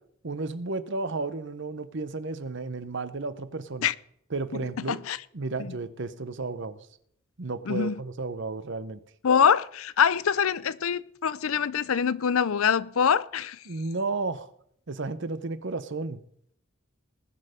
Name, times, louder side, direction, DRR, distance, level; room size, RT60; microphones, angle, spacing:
voice 1, 0.2-3.9 4.3-5.0 5.3-6.8 7.4-9.0 13.7-14.5 14.9-16.2, right 3 dB, 60° right, 0.9 m, -33 dB
voice 2, 4.9-5.2 5.6-5.7 7.7-7.9 9.2-13.6, left 7 dB, 80° left, 0.5 m, -24 dB
19.5 x 6.7 x 5.1 m
head